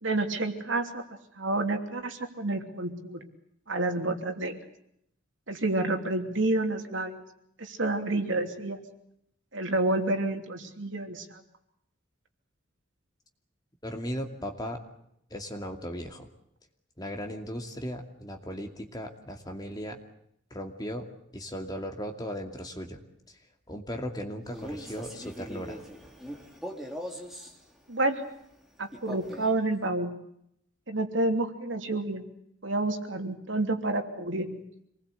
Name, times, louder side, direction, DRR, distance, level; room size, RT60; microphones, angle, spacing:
voice 1, 0.0-1.0 1.4-3.3 3.7-4.6 5.5-7.2 7.6-8.8 9.5-11.4 27.9-28.2 28.8-30.1 30.9-32.2 32.6-34.6, right 2 dB, 75° right, 4 dB, 3.0 m, -29 dB
voice 2, 13.8-14.8 15.3-16.3 17.0-20.0 20.5-21.1 21.3-23.0 23.7-25.8, equal, 20° left, 3 dB, 2.5 m, -37 dB
Male speech man speaking, 24.4-27.6 28.9-29.6, equal, ahead, 3.0 m, -41 dB
27.0 x 20.5 x 8.2 m, 0.75 s
head